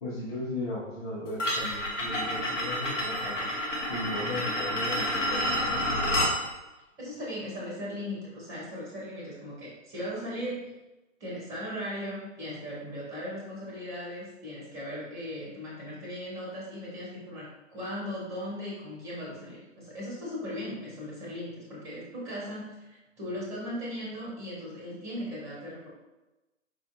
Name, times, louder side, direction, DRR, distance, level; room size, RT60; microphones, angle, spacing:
voice 1, 0.0-3.5 3.9-6.0, left 1 dB, 30° left, -11 dB, 0.9 m, -36 dB
sound 1, 1.4-6.4, left 1 dB, 65° left, 1.1 m, -29 dB
voice 2, 7.0-10.7 11.2-25.9, equal, 5° right, -5 dB, 0.8 m, -38 dB
4.7 x 2.5 x 2.5 m, 1.0 s
figure-of-eight pair, 125°, 39 cm